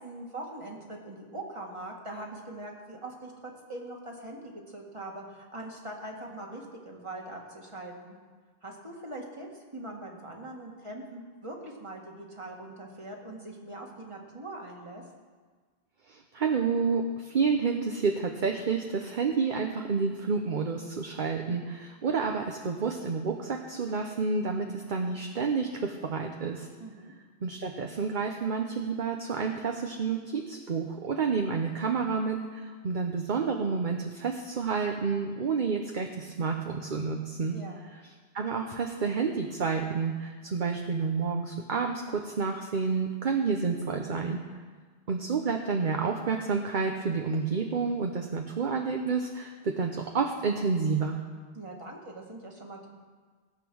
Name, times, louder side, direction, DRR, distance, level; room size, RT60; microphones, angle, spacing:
voice 1, 0.0-8.2 8.6-15.0 26.8-27.1 37.5-37.8 51.5-52.9, right 1 dB, 30° right, 0 dB, 2.0 m, -42 dB
voice 2, 16.1-26.7 27.4-37.6 38.3-44.4 45.1-51.2, right 5 dB, 50° right, 3 dB, 1.0 m, -29 dB
17.5 x 8.3 x 6.2 m, 1.5 s
omnidirectional pair, 1.0 m